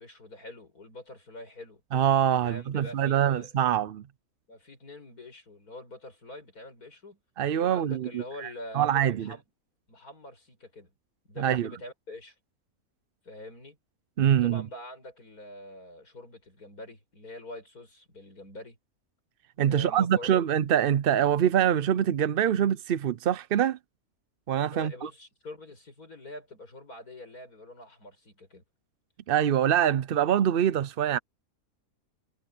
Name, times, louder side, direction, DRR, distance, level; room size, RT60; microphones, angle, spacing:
voice 1, 0.0-1.8 2.4-3.5 4.5-7.2 7.6-9.4 9.9-10.9 11.3-12.4 13.2-13.8 14.4-18.8 19.7-20.3 24.7-28.6, left 1 dB, 75° left, 7.2 m, -45 dB
voice 2, 1.9-4.0 7.4-8.5 8.7-9.3 11.4-11.7 14.2-14.6 19.6-23.8 24.5-25.1 29.3-31.2, right 10 dB, 60° right, 0.6 m, -24 dB
omnidirectional pair, 1.6 m